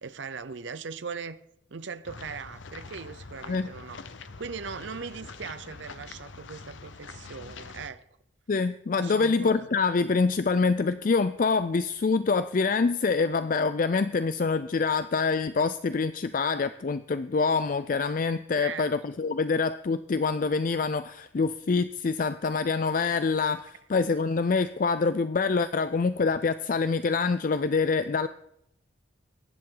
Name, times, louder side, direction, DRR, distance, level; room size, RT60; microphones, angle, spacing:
voice 1, 0.0-1.4 1.7-4.0 4.4-8.0 9.0-9.7 18.6-18.9, right 5 dB, 65° right, 0.7 m, -39 dB
sound 1, 2.0-7.9, left 4 dB, 70° left, 0.9 m, -44 dB
voice 2, 8.5-28.3, left 4 dB, 40° left, 0.4 m, -26 dB
22.5 x 10.5 x 3.9 m
head